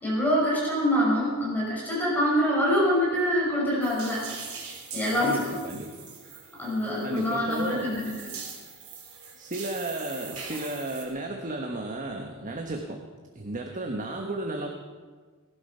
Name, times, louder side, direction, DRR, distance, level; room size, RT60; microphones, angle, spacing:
voice 1, 0.0-4.3 4.9-5.6 6.6-8.1, equal, 10° left, -6 dB, 5.5 m, -25 dB
sound 1, 3.8-11.0, right 5 dB, 70° right, 3.8 m, -42 dB
voice 2, 5.2-5.9 7.0-8.0 9.4-13.0 13.3-14.7, right 2 dB, 35° right, 2 dB, 1.3 m, -33 dB
19.0 x 12.0 x 5.6 m, 1.5 s
head